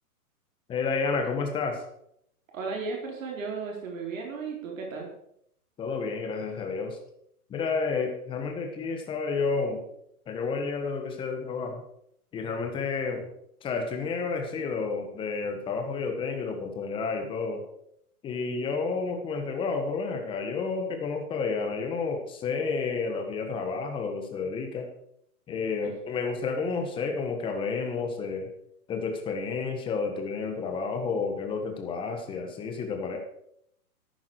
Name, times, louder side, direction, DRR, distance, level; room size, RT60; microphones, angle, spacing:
voice 1, 0.7-1.8 5.8-7.0 7.5-9.8 10.3-11.8 12.3-13.3 13.6-17.6 18.2-24.9 25.5-28.5 28.9-33.2, left 4 dB, 10° left, 4 dB, 1.5 m, -30 dB
voice 2, 2.5-5.1 25.8-25.9, right 4 dB, 60° right, -1 dB, 4.2 m, -35 dB
14.0 x 11.0 x 4.9 m, 0.72 s
hypercardioid pair, 160°, 45 cm